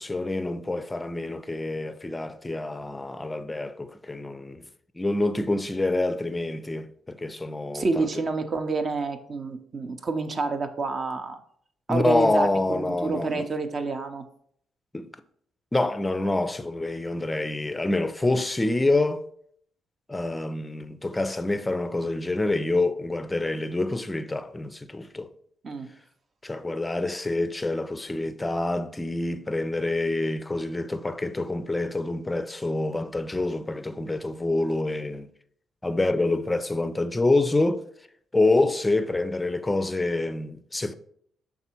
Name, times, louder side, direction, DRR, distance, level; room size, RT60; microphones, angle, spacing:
voice 1, 0.0-4.7 5.0-8.1 11.9-13.5 14.9-15.1 15.7-19.2 20.1-25.3 26.4-35.3 35.8-37.8 38.3-40.9, left 2 dB, 15° left, 0.5 m, -26 dB
voice 2, 7.7-11.4 11.9-14.3 25.6-25.9, right 3 dB, 40° right, 0.7 m, -28 dB
5.9 x 3.6 x 4.4 m
cardioid pair, 90°, 0 cm